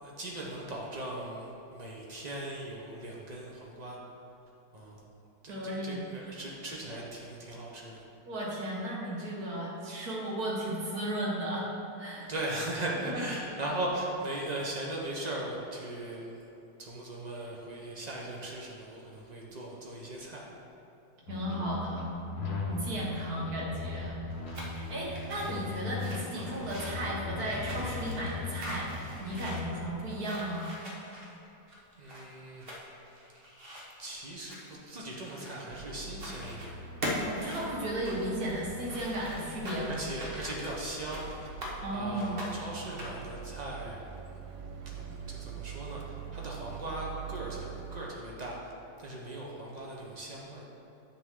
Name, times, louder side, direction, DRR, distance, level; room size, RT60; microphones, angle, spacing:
voice 1, 0.0-4.0 4.7-5.0 5.4-8.0 12.3-16.4 16.8-20.5 22.7-23.0 25.1-25.3 32.0-32.7 34.0-36.8 39.8-41.3 41.9-44.1 44.9-46.0 46.3-50.6, right 1 dB, 80° right, -3 dB, 0.3 m, -39 dB
voice 2, 5.5-6.0 8.3-11.7 12.0-12.3 13.1-13.2 21.3-22.1 22.6-24.1 24.7-30.7 37.3-40.0 41.8-42.5, right 1 dB, 50° right, -4 dB, 1.9 m, -35 dB
sound 1, 21.3-29.9, left 3 dB, 60° left, 1.2 m, -38 dB
Schritte - auf Lavagestein Gummisohle Hüpfen, 24.3-35.8 36.1-36.7 37.0-41.7 42.1-43.3, equal, 35° right, 1.2 m, -42 dB
sound 2, 35.7-48.0, right 5 dB, 65° right, 0.8 m, -44 dB
9.4 x 6.3 x 3.7 m, 3.0 s
omnidirectional pair, 2.2 m